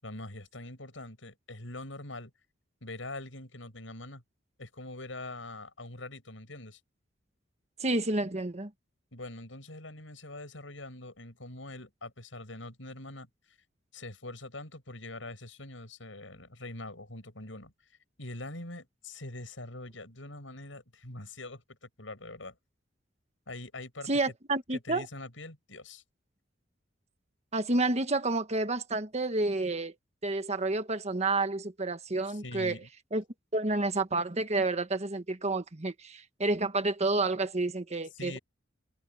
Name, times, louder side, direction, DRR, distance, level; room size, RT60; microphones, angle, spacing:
voice 1, 0.0-2.3 2.8-4.2 4.6-6.8 9.1-13.3 13.9-17.7 18.2-22.6 23.5-24.1 24.7-26.0 32.3-32.9 38.2-38.4, left 2 dB, 85° left, 7.2 m, -43 dB
voice 2, 7.8-8.7 24.1-25.1 27.5-29.9 30.2-32.8 33.1-33.2 33.5-38.4, right 2 dB, 35° right, 1.4 m, -29 dB
head